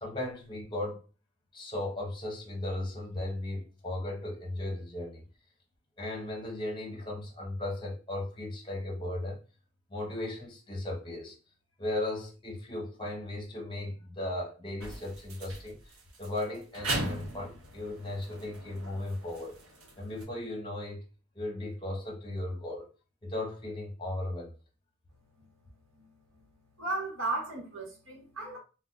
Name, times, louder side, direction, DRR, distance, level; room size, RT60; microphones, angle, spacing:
voice 1, 0.0-1.0 1.5-5.2 6.0-9.4 9.9-11.3 11.8-15.8 16.2-19.5 20.0-21.0 21.3-22.9 23.2-24.5, left 1 dB, 20° left, 0.8 m, -36 dB
sound 1, 14.8-20.2, right 2 dB, 90° right, 0.9 m, -39 dB
voice 2, 26.8-28.6, right 3 dB, 70° right, 1.2 m, -35 dB
2.3 x 2.2 x 3.8 m
head